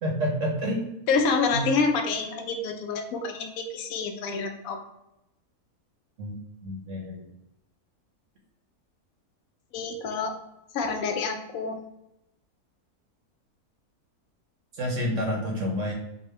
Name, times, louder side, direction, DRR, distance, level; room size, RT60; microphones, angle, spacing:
voice 1, 0.0-0.9 1.5-1.6 6.2-6.3 6.6-7.3 14.7-15.9, equal, 60° right, -1 dB, 1.0 m, -29 dB
voice 2, 1.1-4.8 9.7-10.3 10.7-11.8, left 4 dB, 70° left, 4 dB, 1.0 m, -27 dB
5.0 x 2.2 x 3.1 m, 0.86 s
omnidirectional pair, 1.6 m